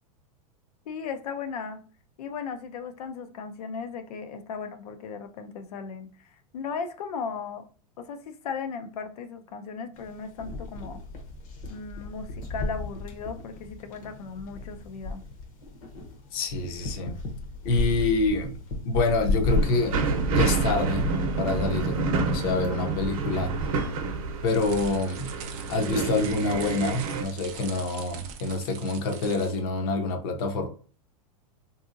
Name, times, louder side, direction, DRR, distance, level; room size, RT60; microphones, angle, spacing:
voice 1, 0.9-1.8 2.2-7.6 8.0-11.0 11.7-15.2, left 5 dB, 90° left, 0.5 m, -36 dB
sound 1, 9.9-26.1, left 2 dB, 60° left, 0.9 m, -34 dB
voice 2, 16.3-17.2 17.6-18.6 18.8-20.0 20.3-23.5 24.4-25.3 25.7-30.7, left 3 dB, 35° left, 0.5 m, -27 dB
sound 2, 19.5-27.2, right 4 dB, 60° right, 0.7 m, -29 dB
sound 3, 24.5-29.7, right 7 dB, 25° right, 0.4 m, -42 dB
3.6 x 2.7 x 2.5 m
supercardioid pair, 175°, 20 cm